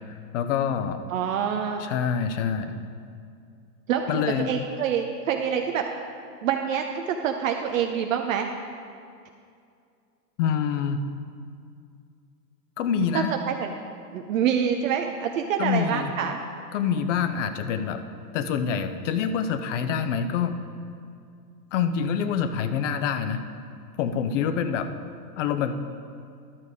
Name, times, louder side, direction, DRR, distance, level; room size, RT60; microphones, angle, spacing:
voice 1, 0.3-1.0 1.8-2.8 4.1-4.5 10.4-11.0 12.8-13.3 15.6-16.1 16.7-18.0 18.3-20.6 21.7-23.4 24.0-24.9 25.4-25.7, left 7 dB, 50° left, 10 dB, 0.8 m, -26 dB
voice 2, 1.1-1.8 3.9-5.8 6.4-8.5 13.1-13.7 14.1-16.4, right 8 dB, 50° right, 4 dB, 0.7 m, -26 dB
11.5 x 6.6 x 4.8 m, 2.4 s
hypercardioid pair, 120°, 49 cm